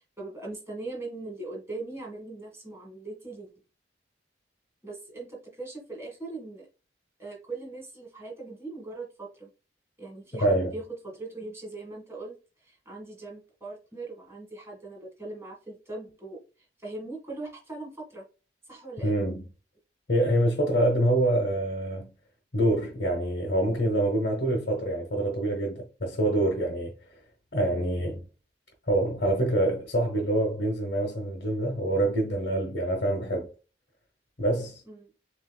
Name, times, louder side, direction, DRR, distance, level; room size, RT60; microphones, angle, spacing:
voice 1, 0.2-3.5 4.8-6.7 7.2-9.5 10.0-12.4 12.6-16.4 16.8-18.3 18.7-19.2 34.9-35.1, right 2 dB, 15° right, 1.8 m, -40 dB
voice 2, 10.4-10.7 19.0-19.5 20.1-22.1 22.5-26.9 27.5-28.3 28.9-33.5 34.4-34.8, right 1 dB, 60° left, 1.2 m, -26 dB
7.2 x 2.8 x 2.3 m
head